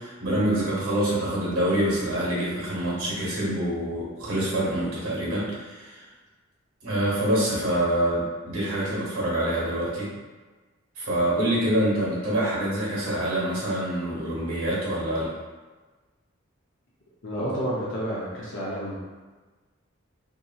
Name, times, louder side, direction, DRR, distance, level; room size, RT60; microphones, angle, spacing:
voice 1, 0.0-6.0 6.8-10.1 11.0-15.3, right 1 dB, 85° right, -6 dB, 1.1 m, -26 dB
voice 2, 17.2-19.1, equal, 55° left, -6 dB, 0.6 m, -30 dB
2.7 x 2.7 x 2.3 m, 1.3 s
head